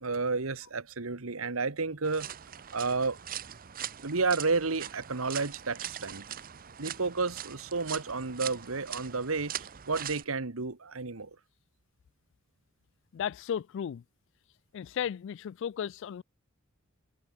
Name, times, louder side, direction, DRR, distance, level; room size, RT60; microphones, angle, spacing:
voice 1, 0.0-2.3 2.7-3.2 4.0-6.2 6.8-11.3, right 4 dB, 85° right, 1.5 m, -31 dB
sound 1, 2.0-10.2, right 10 dB, 45° right, 0.8 m, -41 dB
voice 2, 13.1-14.0 14.7-16.2, left 8 dB, 60° left, 0.3 m, -34 dB
head